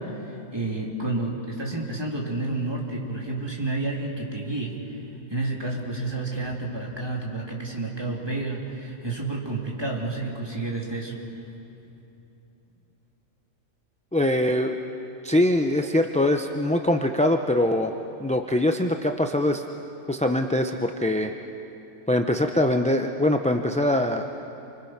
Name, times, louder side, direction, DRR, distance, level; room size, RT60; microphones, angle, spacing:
voice 1, 0.0-4.8 5.3-11.2, right 2 dB, 20° right, -2 dB, 3.3 m, -30 dB
voice 2, 14.1-14.8 15.2-17.9 18.2-19.6 20.1-21.3 22.1-24.2, left 1 dB, 10° left, 4 dB, 0.5 m, -23 dB
29.0 x 25.5 x 6.0 m, 2.9 s
omnidirectional pair, 1.4 m